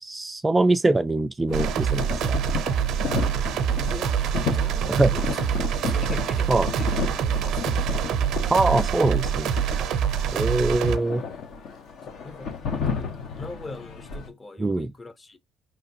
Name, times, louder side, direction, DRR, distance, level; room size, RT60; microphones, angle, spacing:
voice 1, 0.0-2.4 4.9-5.1 6.5-6.7 8.5-9.5 10.3-11.2 14.6-14.9, right 2 dB, 20° right, 0.3 m, -23 dB
sound 1, 1.5-14.3, left 6 dB, 70° left, 1.0 m, -33 dB
sound 2, 1.5-11.0, right 8 dB, 75° right, 0.6 m, -25 dB
voice 2, 3.8-8.1 10.3-10.6 12.0-12.6 12.9-15.4, left 3 dB, 25° left, 0.7 m, -41 dB
4.9 x 3.3 x 2.8 m
supercardioid pair, 80°, 0 cm